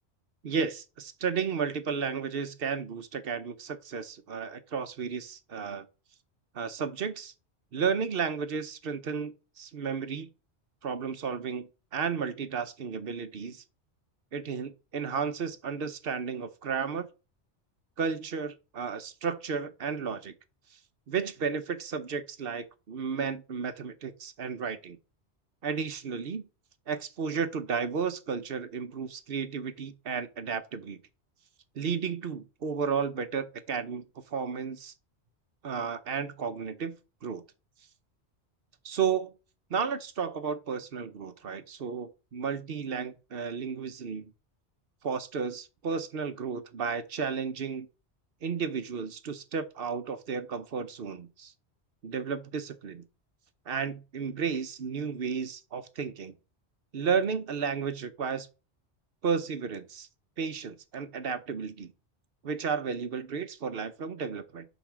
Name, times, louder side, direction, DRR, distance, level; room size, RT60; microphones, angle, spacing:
voice 1, 0.4-5.9 6.5-7.3 7.7-10.3 10.8-13.6 14.3-17.1 18.0-20.3 21.1-25.0 25.6-26.5 26.9-31.0 31.7-34.9 35.6-37.0 37.2-37.4 38.8-39.3 39.7-44.3 45.0-47.9 48.4-51.5 52.0-53.0 53.7-56.4 56.9-58.5 59.2-60.1 60.4-61.9 62.4-64.6, right 6 dB, 60° right, 1.0 m, -33 dB
8.0 x 3.4 x 6.1 m
omnidirectional pair, 1.2 m